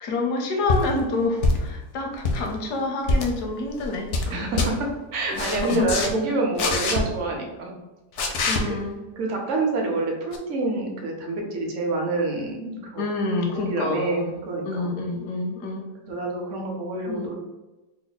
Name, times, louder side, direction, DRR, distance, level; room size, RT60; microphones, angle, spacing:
voice 1, 0.0-4.4 5.3-5.9 8.5-9.0 13.0-15.9 17.1-17.3, left 3 dB, 85° left, 2 dB, 1.2 m, -28 dB
sound 1, 0.7-0.9 1.4-1.8 2.1-2.4 3.0-3.3 3.8-4.3 4.6-4.7 5.3-6.1 6.6-7.0 8.2-8.6 10.3-10.4, left 3 dB, 65° left, 0.7 m, -24 dB
voice 2, 4.3-7.7 8.7-8.8 9.2-13.0 13.5-14.9 16.0-17.4, right 2 dB, 60° right, 0 dB, 0.9 m, -27 dB
3.3 x 2.1 x 3.9 m, 1.1 s
omnidirectional pair, 1.7 m